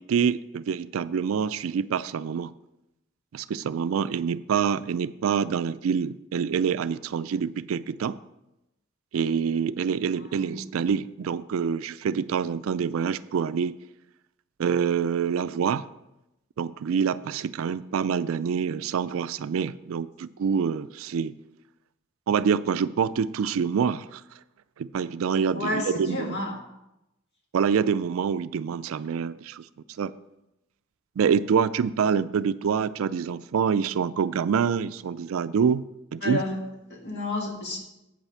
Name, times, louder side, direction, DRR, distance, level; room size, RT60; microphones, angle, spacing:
voice 1, 0.0-2.5 3.3-8.2 9.1-13.8 14.6-15.9 16.6-21.4 22.3-24.2 24.8-26.4 27.5-29.7 30.0-30.1 31.2-35.8 36.1-36.4, right 6 dB, 85° right, 15 dB, 0.4 m, -26 dB
voice 2, 10.2-10.7 25.5-26.6 36.2-37.8, left 2 dB, 55° left, 0 dB, 1.8 m, -31 dB
8.7 x 5.8 x 5.6 m, 0.90 s
head